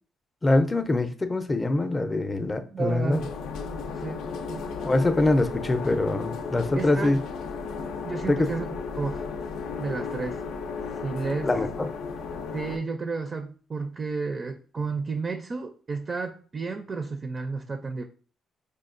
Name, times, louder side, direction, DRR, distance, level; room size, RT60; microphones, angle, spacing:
voice 1, 0.4-3.2 4.8-7.2 8.3-8.5 11.4-11.9, left 2 dB, 25° left, 8 dB, 0.4 m, -24 dB
voice 2, 2.7-3.2 3.9-4.7 6.8-7.2 8.0-8.7 9.0-9.3 9.8-10.4 11.0-11.5 12.5-18.0, right 4 dB, 35° right, 6 dB, 0.4 m, -32 dB
sound 1, 3.1-12.8, left 5 dB, 90° left, 0.4 m, -34 dB
5.0 x 2.3 x 2.5 m, 0.42 s
cardioid pair, 90°, 0 cm